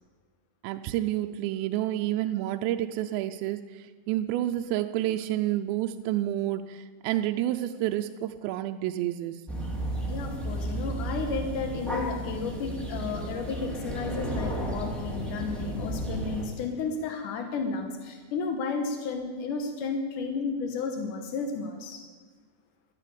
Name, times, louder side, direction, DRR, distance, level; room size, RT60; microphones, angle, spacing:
voice 1, 0.6-9.4, right 13 dB, 85° right, 6 dB, 2.6 m, -29 dB
sound 1, 9.5-16.5, right 1 dB, ahead, 0.7 m, -33 dB
voice 2, 10.1-22.0, left 4 dB, 85° left, 5 dB, 1.8 m, -32 dB
13.5 x 9.9 x 8.5 m, 1.5 s
omnidirectional pair, 5.3 m